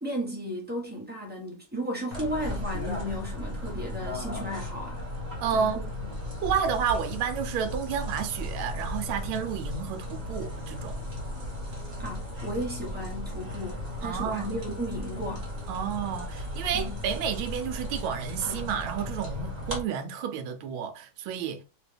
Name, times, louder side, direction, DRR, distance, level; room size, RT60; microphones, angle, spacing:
voice 1, 0.0-5.0 5.5-6.1 12.0-15.5 16.7-17.0 18.4-18.7, equal, 5° right, 0.8 m, -35 dB
sound 1, 2.1-19.8, left 1 dB, 25° right, 1.1 m, -36 dB
voice 2, 5.4-5.8 6.4-11.0 14.0-14.5 15.7-21.6, right 7 dB, 85° right, 1.4 m, -31 dB
3.3 x 3.0 x 3.3 m
omnidirectional pair, 2.2 m